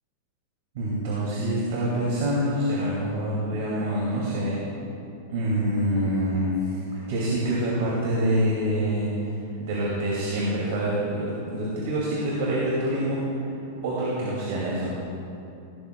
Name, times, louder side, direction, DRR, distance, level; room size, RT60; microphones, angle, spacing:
voice 1, 0.7-4.6 5.3-6.8 7.1-9.1 9.6-13.2 13.8-14.9, right 1 dB, 55° right, -6 dB, 2.4 m, -26 dB
16.5 x 12.5 x 2.3 m, 2.8 s
supercardioid pair, 175°, 0 cm